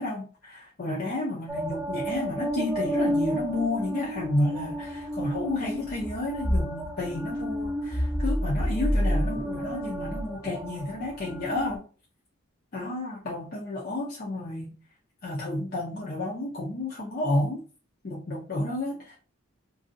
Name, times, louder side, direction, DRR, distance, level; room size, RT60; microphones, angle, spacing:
voice 1, 0.0-11.8 12.7-14.7 15.2-17.6 18.0-19.1, left 1 dB, 45° left, -5 dB, 0.6 m, -31 dB
sound 1, 1.5-11.8, equal, 5° right, 0.5 m, -30 dB
2.6 x 2.3 x 2.5 m, 0.37 s
head